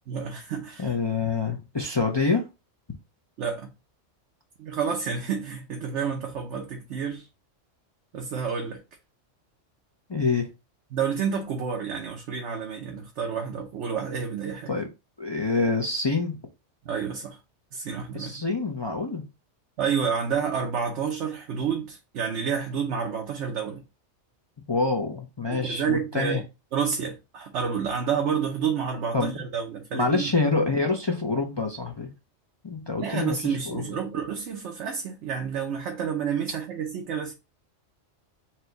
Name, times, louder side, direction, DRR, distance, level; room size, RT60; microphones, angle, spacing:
voice 1, 0.1-0.9 3.4-3.7 4.6-7.3 8.1-8.8 10.9-14.8 16.8-17.4 17.7-18.4 19.8-23.8 25.5-26.4 26.7-30.3 33.0-37.3, right 6 dB, 70° right, 1.0 m, -29 dB
voice 2, 0.8-2.4 10.1-10.5 14.7-14.9 15.2-16.4 18.1-19.2 24.7-26.4 29.1-29.4 29.9-32.1 32.6-33.9, left 3 dB, 35° left, 0.5 m, -26 dB
4.4 x 2.2 x 3.9 m
omnidirectional pair, 1.2 m